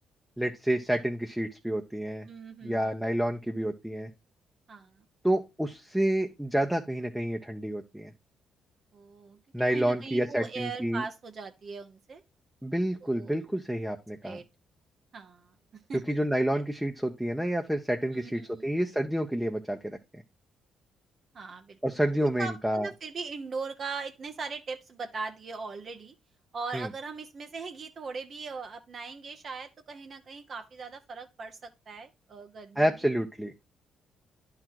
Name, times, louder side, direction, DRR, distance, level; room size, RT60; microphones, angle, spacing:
voice 1, 0.4-2.3 2.6-4.1 5.2-8.1 9.5-11.0 12.6-14.4 15.9-20.2 21.8-22.9 26.7-26.9 32.8-33.5, right 1 dB, 5° right, 0.8 m, -29 dB
voice 2, 2.3-2.9 4.7-5.0 8.9-9.4 9.7-12.2 13.0-13.3 14.2-14.4 15.1-16.2 16.5-16.6 18.1-18.7 21.3-21.8 22.1-26.1 26.5-32.9, right 4 dB, 50° right, 0.9 m, -40 dB
10.5 x 3.8 x 4.6 m
cardioid pair, 90°, 0 cm